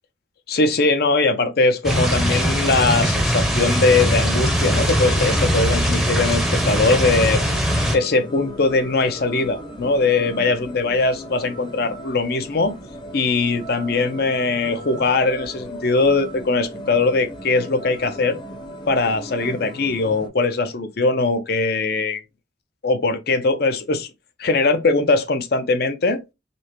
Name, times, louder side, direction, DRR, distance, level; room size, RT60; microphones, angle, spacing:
voice 1, 0.5-7.4 7.9-12.7 13.1-18.4 18.9-22.2 22.8-24.1 24.4-26.2, left 3 dB, 60° left, 0.6 m, -20 dB
sound 1, 1.8-8.0, equal, ahead, 0.6 m, -20 dB
sound 2, 3.7-20.3, left 1 dB, 25° left, 0.8 m, -36 dB
5.3 x 2.2 x 3.0 m
head